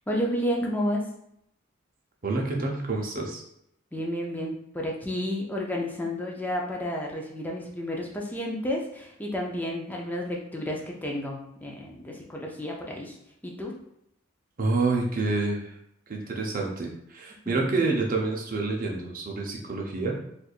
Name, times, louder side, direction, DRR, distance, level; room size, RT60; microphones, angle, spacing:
voice 1, 0.1-1.1 3.9-13.1 13.4-13.7 17.5-17.6, equal, 10° left, -1 dB, 0.5 m, -31 dB
voice 2, 2.2-3.4 14.6-15.7 16.1-20.2, right 3 dB, 45° right, 0 dB, 0.6 m, -28 dB
4.3 x 2.5 x 2.4 m, 0.76 s
head